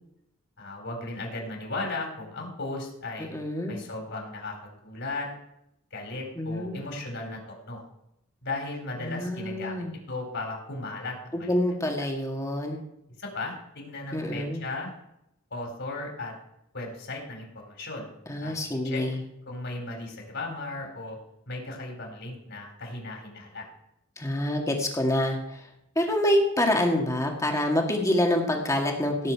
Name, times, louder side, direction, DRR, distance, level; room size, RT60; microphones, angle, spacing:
voice 1, 0.6-3.3 3.7-5.3 5.9-7.8 8.4-11.5 13.2-14.9 15.5-16.3 16.7-18.1 18.4-18.6 18.8-19.0 19.5-21.2 21.5-23.7, left 2 dB, 60° left, 1 dB, 4.3 m, -36 dB
voice 2, 3.3-3.8 6.4-6.8 9.0-9.9 11.3-12.8 14.1-14.6 18.3-19.2 24.2-25.6 26.0-29.3, left 1 dB, 15° left, 2 dB, 2.0 m, -26 dB
17.5 x 7.8 x 4.8 m, 0.80 s
head